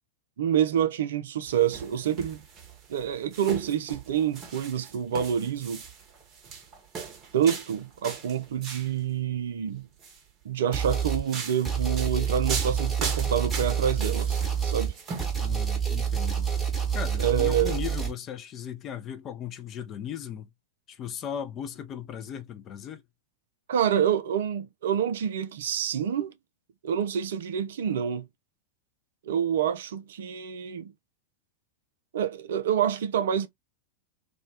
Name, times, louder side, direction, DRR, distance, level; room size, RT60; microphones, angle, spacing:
voice 1, 0.4-2.4 2.9-5.8 7.3-9.9 10.4-14.9 17.2-17.8 23.7-26.3 26.8-28.3 29.2-30.9 32.1-33.5, right 9 dB, 60° right, 0.4 m, -27 dB
sound 1, 1.5-9.0 9.8-10.2 10.8-15.3, right 5 dB, 30° right, 0.7 m, -39 dB
sound 2, 10.7-11.3 11.6-18.1, right 7 dB, 5° right, 1.0 m, -28 dB
voice 2, 15.4-16.5 16.9-20.5 20.9-23.0, left 9 dB, 30° left, 0.4 m, -37 dB
2.3 x 2.1 x 2.6 m
figure-of-eight pair, 90°, 0 cm